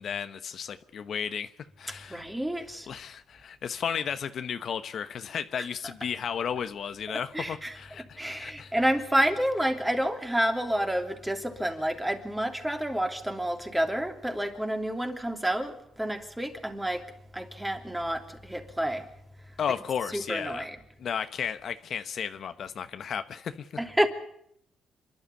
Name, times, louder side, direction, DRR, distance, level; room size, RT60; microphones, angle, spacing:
voice 1, 0.0-1.5 1.8-2.2 2.9-8.7 19.6-20.7 21.0-23.7, left 7 dB, 60° left, 1.0 m, -34 dB
voice 2, 1.9-2.9 5.6-5.7 7.1-7.8 8.2-17.1 17.3-19.1 20.1-20.8 23.8-24.1, right 1 dB, 10° right, 3.0 m, -29 dB
27.5 x 12.0 x 9.8 m
cardioid pair, 90°, 0 cm